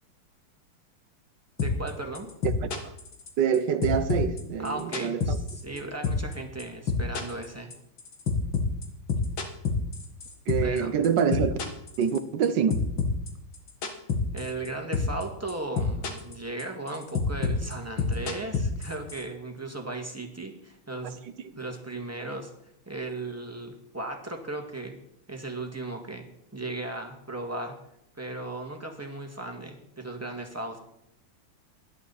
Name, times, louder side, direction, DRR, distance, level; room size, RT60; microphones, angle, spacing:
sound 1, 1.6-1.9 2.2-3.6 3.8-5.8 6.0-6.3 6.6-10.8 11.0-12.5 12.7-14.7 14.9-15.2 15.5-16.3 16.6-19.2, left 5 dB, 70° left, 2.7 m, -28 dB
voice 1, 1.6-2.3 4.6-7.7 10.6-10.9 14.3-21.2 21.6-22.5 22.9-25.0 25.3-26.3 26.5-27.8 28.2-30.8, right 2 dB, 5° right, 1.9 m, -36 dB
voice 2, 3.4-5.4 10.5-11.6 12.0-12.8, right 7 dB, 60° right, 1.5 m, -26 dB
19.0 x 11.5 x 4.2 m
omnidirectional pair, 2.3 m